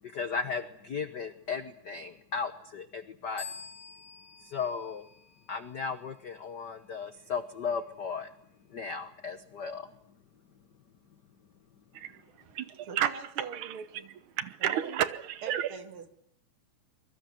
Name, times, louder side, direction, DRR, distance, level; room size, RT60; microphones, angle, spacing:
voice 1, 0.0-3.5 4.4-5.1 5.5-8.3 8.7-10.2 10.6-10.7, left 5 dB, 85° left, 0.9 m, -36 dB
sound 1, 3.4-5.9, left 6 dB, 20° left, 1.3 m, -47 dB
voice 2, 11.9-13.1 13.4-14.0 14.3-15.7, right 11 dB, 70° right, 2.4 m, -32 dB
voice 3, 12.9-14.1 14.6-15.0 15.4-16.1, right 6 dB, 45° right, 2.8 m, -42 dB
24.0 x 22.5 x 7.9 m
omnidirectional pair, 3.7 m